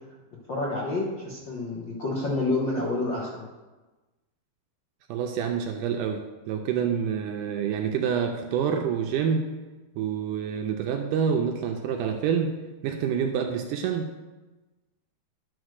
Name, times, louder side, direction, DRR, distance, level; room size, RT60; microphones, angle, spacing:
voice 1, 0.5-3.4, left 2 dB, 60° left, -5 dB, 1.2 m, -28 dB
voice 2, 5.1-9.5 10.0-12.6 12.8-14.1, right 7 dB, 80° right, 4 dB, 2.0 m, -27 dB
11.5 x 4.3 x 6.4 m, 1.2 s
omnidirectional pair, 4.1 m